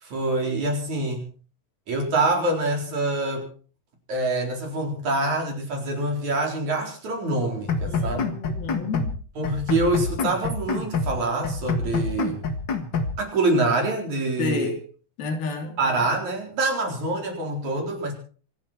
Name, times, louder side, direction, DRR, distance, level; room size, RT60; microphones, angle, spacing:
voice 1, 0.0-1.3 1.9-3.5 4.1-8.2 9.4-12.4 13.2-14.7 15.8-18.1, right 2 dB, 55° right, 5.6 m, -25 dB
sound 1, 7.7-9.2 9.4-11.2 11.4-13.1, left 4 dB, 40° left, 1.8 m, -27 dB
voice 2, 7.9-9.1 14.4-14.8 15.2-15.8, left 4 dB, 85° left, 4.6 m, -30 dB
25.5 x 11.5 x 4.5 m
omnidirectional pair, 4.2 m